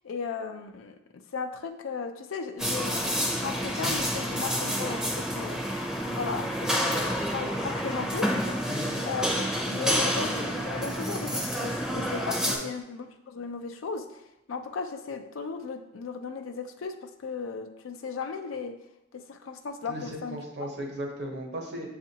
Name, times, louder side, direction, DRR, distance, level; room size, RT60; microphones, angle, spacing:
voice 1, 0.0-9.3 9.6-14.2 14.5-18.7 19.1-20.7, left 5 dB, 90° left, 7 dB, 0.4 m, -36 dB
sound 1, 2.6-12.6, equal, 5° right, 0.5 m, -29 dB
voice 2, 8.7-9.1 12.4-12.7 19.8-21.9, right 1 dB, 60° right, 0 dB, 0.9 m, -37 dB
7.0 x 2.5 x 2.8 m, 0.88 s
head